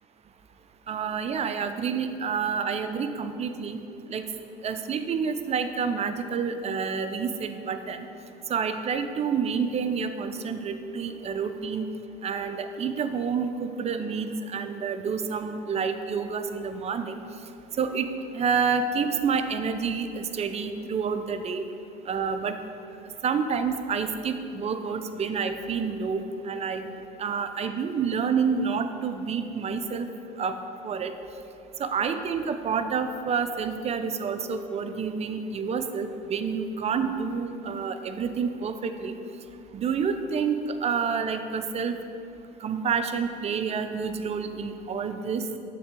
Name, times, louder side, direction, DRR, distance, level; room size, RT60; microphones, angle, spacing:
voice 1, 0.9-3.8 4.1-4.2 4.6-8.1 8.5-11.9 12.2-17.2 17.8-18.1 18.3-21.6 22.1-22.6 23.2-26.9 27.2-30.1 30.4-30.5 30.8-31.1 31.8-39.2 39.7-42.0 42.6-45.4, right 6 dB, 35° right, 9 dB, 0.5 m, -28 dB
7.2 x 3.4 x 4.4 m, 2.7 s
supercardioid pair, 75°, 19 cm